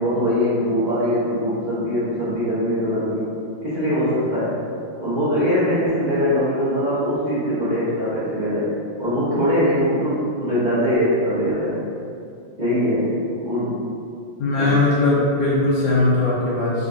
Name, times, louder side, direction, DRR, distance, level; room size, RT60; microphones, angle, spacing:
voice 1, 0.0-3.3 3.6-4.6 5.0-11.8 12.6-13.8 14.6-14.7, equal, 45° right, -14 dB, 0.5 m, -22 dB
voice 2, 14.4-16.9, left 2 dB, 65° left, -7 dB, 1.2 m, -19 dB
3.7 x 3.3 x 2.6 m, 2.4 s
omnidirectional pair, 2.3 m